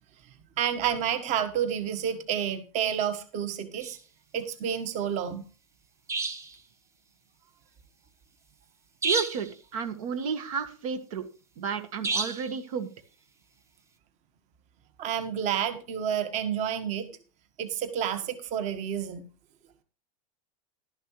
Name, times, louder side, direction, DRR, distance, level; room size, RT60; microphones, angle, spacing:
voice 1, 0.6-4.0 4.3-5.5 15.0-17.1 17.6-19.2, right 9 dB, 40° right, 9 dB, 1.6 m, -29 dB
sound 1, 3.8-4.0 6.1-6.6 9.0-9.5 12.0-12.5, right 3 dB, 15° right, 1.0 m, -30 dB
voice 2, 9.0-11.3 11.6-12.9, right 6 dB, 70° right, 9 dB, 1.7 m, -32 dB
12.0 x 10.5 x 3.2 m, 0.36 s
supercardioid pair, 130°, 18 cm